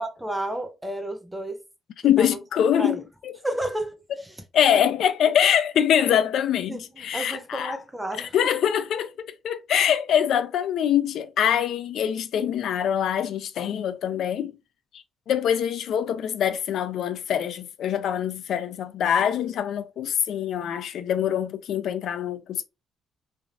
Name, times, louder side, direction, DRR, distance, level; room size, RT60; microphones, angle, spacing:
voice 1, 0.0-1.6 2.2-2.4 2.7-3.0 3.4-4.4 6.7-8.5, right 1 dB, 10° right, 0.7 m, -32 dB
voice 2, 2.0-3.4 4.5-7.8 8.2-14.5 15.3-22.6, left 9 dB, 75° left, 0.3 m, -24 dB
3.3 x 2.4 x 2.5 m
cardioid pair, 90°, 0 cm